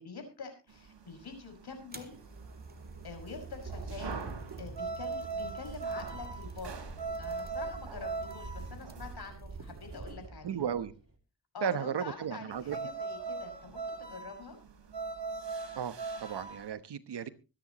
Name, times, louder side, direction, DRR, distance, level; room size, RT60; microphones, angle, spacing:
voice 1, 0.0-2.1 3.0-4.2 4.6-10.6 11.5-14.6, left 4 dB, 65° left, 5 dB, 6.0 m, -46 dB
sound 1, 0.7-9.1 12.5-16.7, right 4 dB, 85° right, 3.4 m, -40 dB
sound 2, 1.9-10.1, right 4 dB, 20° right, 1.9 m, -47 dB
sound 3, 2.1-11.1, right 4 dB, 50° right, 2.8 m, -48 dB
voice 2, 10.4-10.9 11.6-12.8 15.8-17.3, right 8 dB, 70° right, 13 dB, 1.1 m, -35 dB
24.0 x 10.0 x 3.0 m, 0.30 s
cardioid pair, 90°, 42 cm